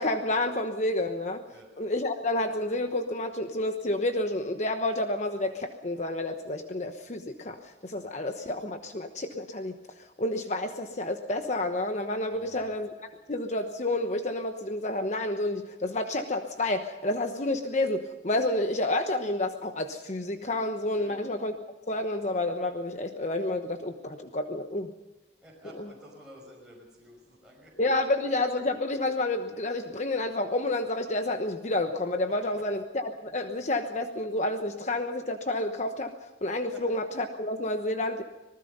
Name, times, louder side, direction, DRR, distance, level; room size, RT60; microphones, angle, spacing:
voice 1, 0.0-1.4 1.8-12.9 13.3-21.6 21.9-24.9 25.7-25.9 27.8-38.2, left 2 dB, 40° left, 6 dB, 1.1 m, -30 dB
voice 2, 12.3-12.7 21.0-21.1 25.4-27.9 36.7-36.8, equal, 5° right, -5 dB, 5.8 m, -51 dB
26.0 x 19.5 x 5.5 m, 1.0 s
head